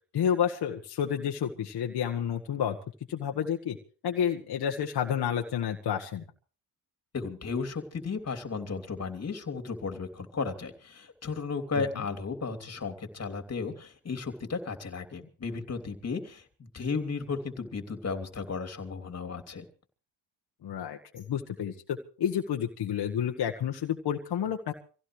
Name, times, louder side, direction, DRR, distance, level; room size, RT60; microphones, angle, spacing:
voice 1, 0.1-2.8 3.1-3.8 4.0-6.2 20.6-24.7, left 9 dB, 65° left, 2 dB, 1.6 m, -30 dB
voice 2, 7.1-16.4 16.7-19.6, left 4 dB, 40° left, 7 dB, 3.1 m, -34 dB
25.5 x 16.5 x 3.3 m, 0.39 s
cardioid pair, 80°, 41 cm